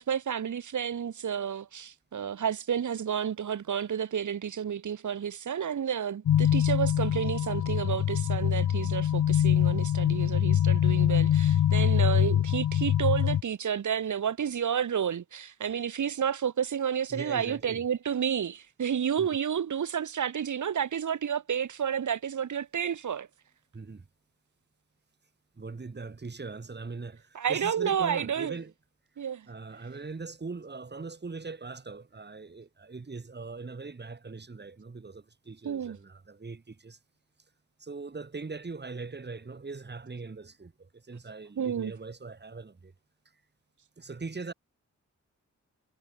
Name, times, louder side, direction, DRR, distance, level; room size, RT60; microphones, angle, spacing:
voice 1, 0.0-23.3 27.3-28.6 29.2-29.5 35.6-36.0 41.6-41.9, right 8 dB, 75° right, 1.8 m, -30 dB
sound 1, 6.3-13.4, left 10 dB, 80° left, 0.8 m, -24 dB
voice 2, 17.1-17.8 19.2-19.3 23.7-24.1 25.6-28.7 29.5-37.0 37.8-42.9 44.0-44.5, right 4 dB, 35° right, 4.0 m, -41 dB
wide cardioid pair, 110°, 30 cm